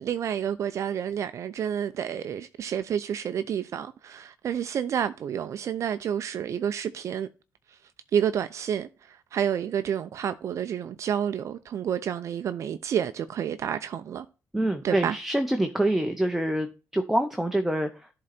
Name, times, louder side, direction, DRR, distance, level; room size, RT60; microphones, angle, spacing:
voice 1, 0.0-7.3 7.7-7.8 8.1-14.3 14.8-15.1, right 9 dB, 55° right, 0.5 m, -29 dB
voice 2, 14.5-18.1, right 1 dB, 5° right, 0.7 m, -26 dB
11.0 x 3.9 x 4.2 m
cardioid pair, 120°, 6 cm